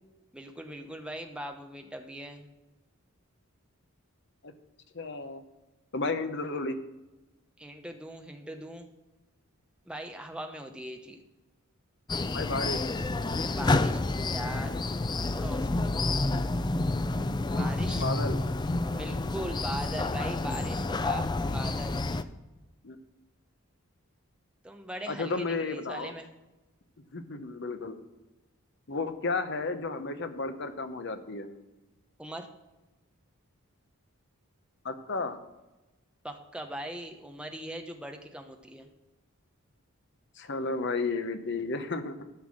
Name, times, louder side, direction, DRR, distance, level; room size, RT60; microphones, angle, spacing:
voice 1, 0.3-2.4 7.6-8.9 9.9-11.2 13.5-14.8 15.3-16.0 17.6-18.0 18.9-22.0 24.6-26.3 32.2-32.5 36.2-38.9, right 1 dB, 5° right, 4 dB, 0.9 m, -40 dB
voice 2, 4.9-5.4 5.9-6.8 12.3-12.8 17.9-18.4 22.8-23.0 25.1-26.1 27.1-28.0 28.9-31.5 34.8-35.4 40.4-42.2, left 3 dB, 50° left, 9 dB, 0.9 m, -32 dB
sound 1, 12.1-22.2, left 2 dB, 20° left, 0.3 m, -29 dB
12.5 x 5.7 x 6.3 m, 1.1 s
head